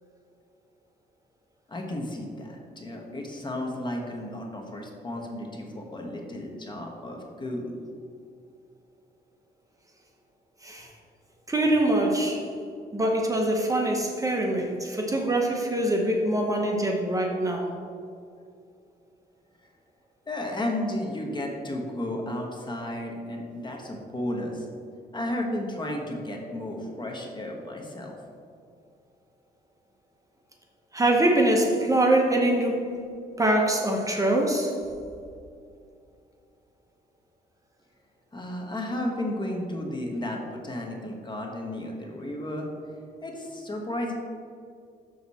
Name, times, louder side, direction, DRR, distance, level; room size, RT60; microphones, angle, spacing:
voice 1, 1.7-7.7 20.3-24.7 25.1-28.2 38.3-42.7 43.2-44.1, left 1 dB, 25° left, 1 dB, 1.1 m, -33 dB
voice 2, 11.5-12.5 12.9-17.7 30.9-33.0 33.4-34.8, right 1 dB, 20° right, 1 dB, 0.9 m, -24 dB
6.8 x 6.4 x 4.1 m, 2.4 s
cardioid pair, 115°, 17 cm